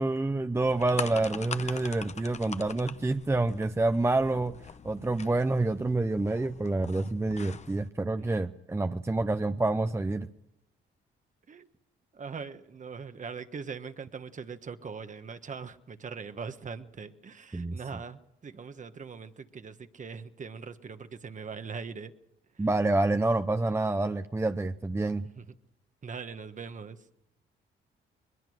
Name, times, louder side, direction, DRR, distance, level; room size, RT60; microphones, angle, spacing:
voice 1, 0.0-4.6 4.8-10.3 17.5-18.0 22.6-25.3, right 2 dB, 15° right, 9 dB, 0.7 m, -28 dB
sound 1, 0.6-7.9, left 6 dB, 35° left, 0.8 m, -43 dB
voice 2, 12.1-22.1 25.4-25.5 26.0-27.0, right 5 dB, 40° right, 9 dB, 1.4 m, -41 dB
21.5 x 20.5 x 6.5 m, 0.86 s
cardioid pair, 90°, 20 cm